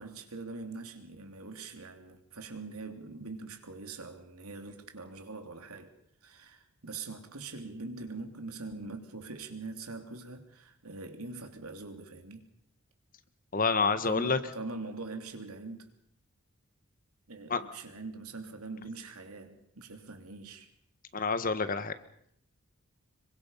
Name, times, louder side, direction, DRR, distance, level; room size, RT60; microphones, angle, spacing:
voice 1, 0.0-5.9 6.2-12.5 14.0-15.9 17.3-20.7, right 3 dB, 85° right, 3.1 m, -43 dB
voice 2, 13.5-14.4 17.5-17.6 21.1-21.9, left 4 dB, 40° left, 1.4 m, -28 dB
26.5 x 23.5 x 5.6 m
head